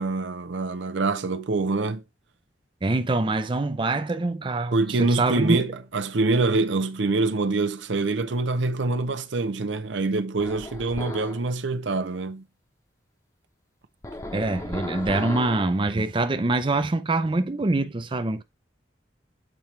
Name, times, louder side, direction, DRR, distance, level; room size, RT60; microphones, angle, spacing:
voice 1, 0.0-2.0 4.7-12.4, right 3 dB, 90° right, 0.7 m, -25 dB
voice 2, 2.8-5.6 14.3-18.4, right 2 dB, 30° right, 0.5 m, -25 dB
sound 1, 10.4-11.5 14.0-15.8, left 1 dB, 20° left, 0.9 m, -35 dB
7.5 x 4.4 x 3.2 m
head